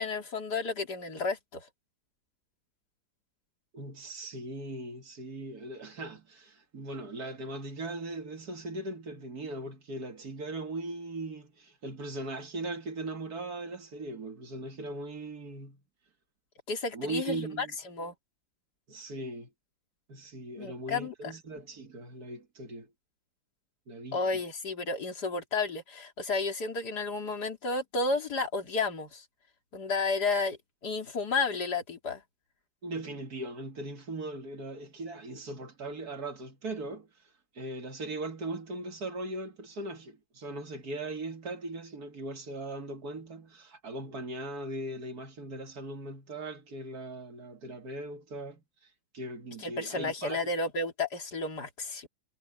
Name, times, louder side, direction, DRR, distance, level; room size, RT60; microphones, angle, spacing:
voice 1, 0.0-1.7 16.7-18.1 20.6-21.3 24.1-29.3 29.7-30.6 30.8-32.2 49.6-52.1, left 3 dB, 55° left, 3.7 m, -32 dB
voice 2, 3.7-15.8 16.9-17.7 18.9-19.5 20.1-22.9 23.9-24.2 32.8-37.1 37.6-48.6 49.1-50.4, right 2 dB, 50° right, 2.5 m, -39 dB
omnidirectional pair, 2.1 m